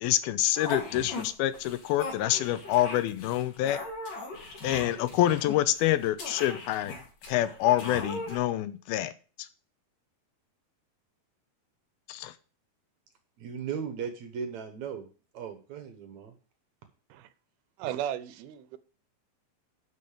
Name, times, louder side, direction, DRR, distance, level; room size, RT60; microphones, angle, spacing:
voice 1, 0.0-3.8 4.6-7.0 7.3-9.1 12.1-12.3, left 13 dB, 85° left, 2.5 m, -27 dB
sound 1, 0.6-1.3 1.5-8.4, left 2 dB, 60° left, 4.8 m, -39 dB
voice 2, 13.4-15.1 15.3-16.3, right 7 dB, 65° right, 2.0 m, -37 dB
voice 3, 17.8-18.8, right 11 dB, 85° right, 2.7 m, -34 dB
12.0 x 5.6 x 5.0 m
omnidirectional pair, 4.4 m